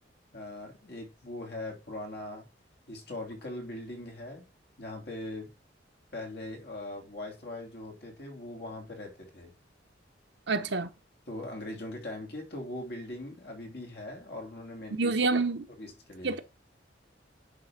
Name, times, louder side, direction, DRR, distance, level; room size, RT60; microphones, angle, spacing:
voice 1, 0.3-2.5 2.9-4.4 4.8-5.5 6.1-9.5 11.3-15.1 15.8-16.4, left 1 dB, 55° left, 3.0 m, -40 dB
voice 2, 10.5-10.9 14.9-15.7 16.2-16.4, right 3 dB, 65° right, 1.0 m, -27 dB
10.0 x 3.6 x 5.8 m
head